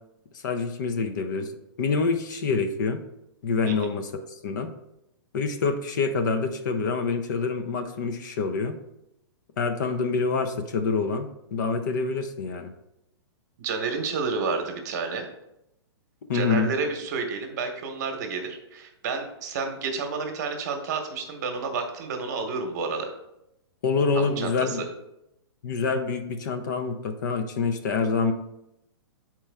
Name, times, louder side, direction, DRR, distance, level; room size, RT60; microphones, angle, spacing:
voice 1, 0.4-1.5 1.8-3.0 3.4-4.7 5.3-8.8 9.6-12.7 16.3-16.7 23.8-24.8 25.6-28.3, left 4 dB, 45° left, 7 dB, 0.6 m, -26 dB
voice 2, 13.6-15.2 16.3-23.1 24.1-24.8, right 4 dB, 40° right, 4 dB, 1.0 m, -30 dB
7.0 x 4.5 x 3.4 m, 0.85 s
hypercardioid pair, 170°, 14 cm